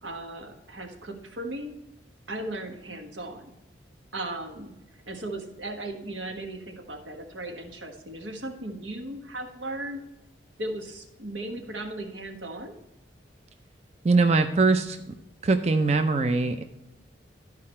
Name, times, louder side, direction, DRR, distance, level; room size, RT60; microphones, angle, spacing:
voice 1, 0.0-1.7 2.3-3.5 4.1-10.0 10.6-12.7, right 1 dB, 85° right, 4 dB, 1.4 m, -37 dB
voice 2, 14.0-15.0 15.4-16.6, right 3 dB, 35° right, 7 dB, 0.5 m, -22 dB
12.5 x 4.8 x 4.3 m, 0.92 s
head